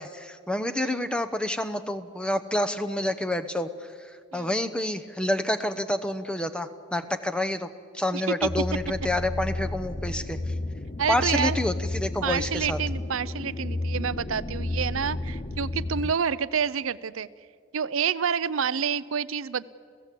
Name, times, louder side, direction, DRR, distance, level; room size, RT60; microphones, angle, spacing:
voice 1, 0.0-7.7 7.9-10.5 11.1-12.8, left 1 dB, 5° left, 8 dB, 0.9 m, -28 dB
sound 1, 8.4-16.1, left 2 dB, 35° left, 0.6 m, -32 dB
voice 2, 11.0-11.6 12.2-17.3 17.7-19.6, right 7 dB, 80° right, 16 dB, 0.6 m, -28 dB
29.5 x 16.0 x 8.5 m, 2.1 s
head